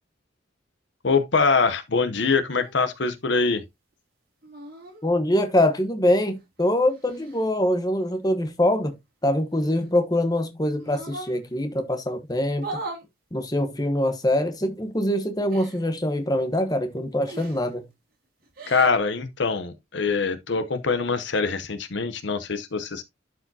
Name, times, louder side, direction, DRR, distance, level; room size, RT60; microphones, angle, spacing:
voice 1, 1.0-3.6 18.7-23.0, left 4 dB, 60° left, 0.8 m, -23 dB
sound 1, 2.5-2.8 4.4-5.0 6.3-7.5 9.5-10.3 10.8-11.4 12.5-13.1 14.3-14.5 15.5-15.8 17.3-17.7 18.4-19.0, right 2 dB, 45° right, 3.3 m, -39 dB
voice 2, 5.0-8.9 9.2-12.7 13.3-17.8, left 1 dB, 20° left, 1.1 m, -24 dB
11.5 x 4.9 x 2.7 m
head